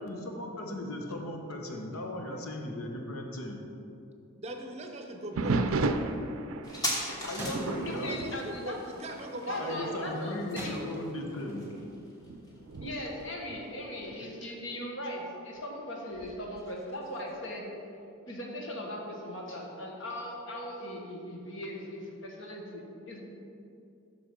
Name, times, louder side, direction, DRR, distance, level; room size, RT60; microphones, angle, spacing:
voice 1, 0.0-3.6 7.3-8.1 9.5-11.7, left 1 dB, 85° left, 2 dB, 1.0 m, -37 dB
voice 2, 4.3-5.6 7.9-10.2, right 1 dB, 30° right, 4 dB, 0.6 m, -40 dB
sound 1, 5.4-9.5 9.8-10.2 10.8-10.9 11.6-14.3 16.2-16.7, right 3 dB, 75° right, 0.4 m, -34 dB
sound 2, 6.6-13.7 14.0-14.1, equal, 15° left, 1.0 m, -40 dB
sound 3, 7.4-8.4 8.7-8.8 10.6-11.7, right 1 dB, 10° right, 1.2 m, -41 dB
voice 3, 7.8-8.8 9.5-10.8 12.8-17.7 18.3-23.2, left 1 dB, 65° left, 0 dB, 1.3 m, -39 dB
7.3 x 6.0 x 5.2 m, 2.7 s
head